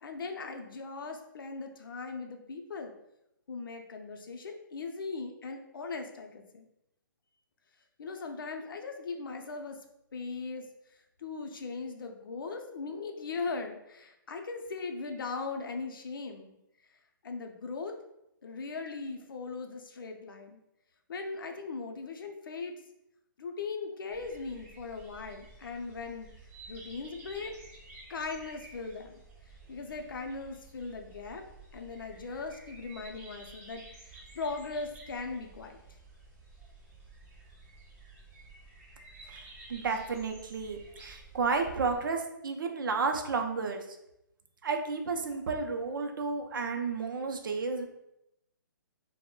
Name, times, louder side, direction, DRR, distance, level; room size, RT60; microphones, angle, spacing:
voice 1, 0.0-2.9 3.5-6.6 8.0-9.8 10.1-10.7 11.2-16.5 17.2-18.0 18.4-20.6 21.1-22.8 23.4-26.3 26.7-27.5 28.1-29.2 29.7-31.4 31.7-35.8, left 4 dB, 80° left, 4 dB, 0.5 m, -39 dB
sound 1, 24.1-42.0, right 3 dB, 40° right, 0.9 m, -52 dB
voice 2, 39.2-44.0 44.6-47.8, right 4 dB, 70° right, 4 dB, 0.4 m, -32 dB
2.2 x 2.1 x 3.6 m, 0.85 s
hypercardioid pair, 170°, 11 cm